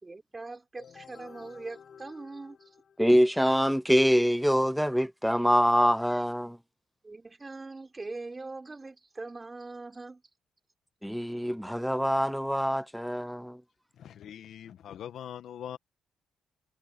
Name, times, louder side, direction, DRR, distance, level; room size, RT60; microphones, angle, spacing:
voice 1, 0.0-2.6 7.0-10.2, right 3 dB, 20° right, 5.0 m, -42 dB
sound 1, 0.7-3.4, left 7 dB, 55° left, 3.9 m, -53 dB
voice 2, 3.0-6.6 11.0-13.6, equal, ahead, 0.5 m, -25 dB
voice 3, 14.0-15.8, left 10 dB, 70° left, 1.5 m, -42 dB
cardioid pair, 90°, 0 cm